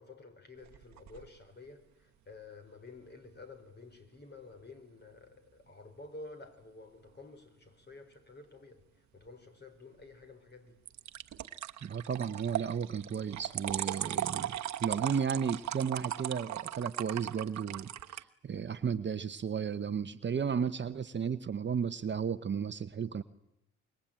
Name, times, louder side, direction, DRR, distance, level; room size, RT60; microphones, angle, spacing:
voice 1, 0.0-10.8, left 3 dB, 35° left, 5.2 m, -51 dB
sound 1, 0.6-1.3 10.9-18.2, right 12 dB, 65° right, 1.2 m, -38 dB
voice 2, 11.8-23.2, right 7 dB, 40° right, 1.0 m, -34 dB
25.5 x 22.5 x 9.0 m
cardioid pair, 90°, 30 cm